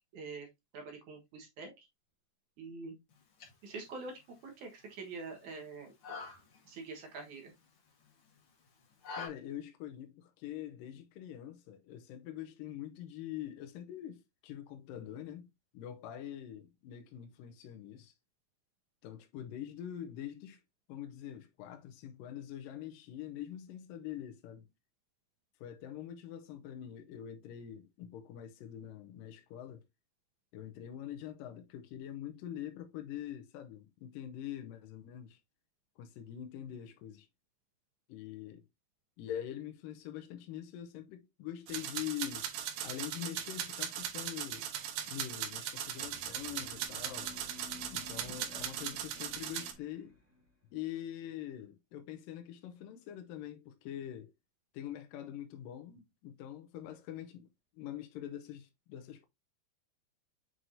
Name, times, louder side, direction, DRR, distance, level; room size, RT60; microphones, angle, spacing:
voice 1, 0.1-0.5 0.7-1.9 2.6-3.0 3.6-5.9 6.7-7.5, right 3 dB, 60° right, 2.3 m, -45 dB
sound 1, 3.1-9.3, left 4 dB, 45° left, 1.9 m, -50 dB
voice 2, 9.2-15.5 15.7-18.1 19.0-20.6 20.9-24.7 25.6-29.8 30.5-35.4 36.0-37.3 38.1-38.6 39.2-42.5 42.8-44.7 45.1-47.3 47.9-50.2 50.7-54.3 54.7-57.5 57.8-59.3, left 11 dB, 80° left, 2.0 m, -44 dB
sound 2, 41.7-49.7, right 10 dB, 80° right, 3.1 m, -39 dB
sound 3, 45.9-50.5, left 3 dB, 5° right, 1.8 m, -54 dB
7.7 x 4.6 x 2.6 m
omnidirectional pair, 4.8 m